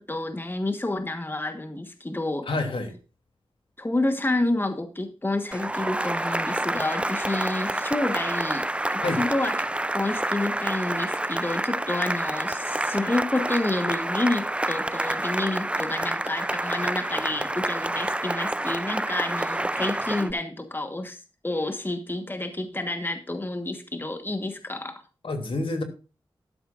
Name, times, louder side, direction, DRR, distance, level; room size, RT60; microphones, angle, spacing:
voice 1, 0.0-2.5 3.8-9.6 9.9-25.0, left 2 dB, 20° left, 1.3 m, -29 dB
voice 2, 2.4-3.0 9.0-9.2 25.2-25.8, left 2 dB, 70° left, 2.9 m, -28 dB
Cheering / Applause, 5.5-20.3, right 1 dB, 10° right, 0.5 m, -28 dB
12.5 x 12.0 x 2.5 m
wide cardioid pair, 65°, 9 cm